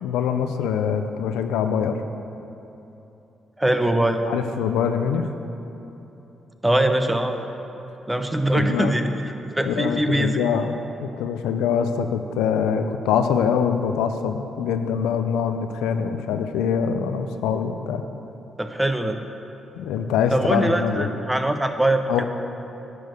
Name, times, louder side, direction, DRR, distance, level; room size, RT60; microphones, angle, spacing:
voice 1, 0.0-2.0 4.2-5.3 8.5-8.9 9.6-18.0 19.8-21.1 22.1-22.2, left 7 dB, 80° left, 7 dB, 0.4 m, -24 dB
voice 2, 3.6-4.2 6.6-7.3 8.1-9.1 9.6-10.4 18.6-19.2 20.3-22.0, right 1 dB, 10° right, 6 dB, 0.9 m, -22 dB
10.0 x 4.7 x 7.8 m, 3.0 s
hypercardioid pair, 50°, 0 cm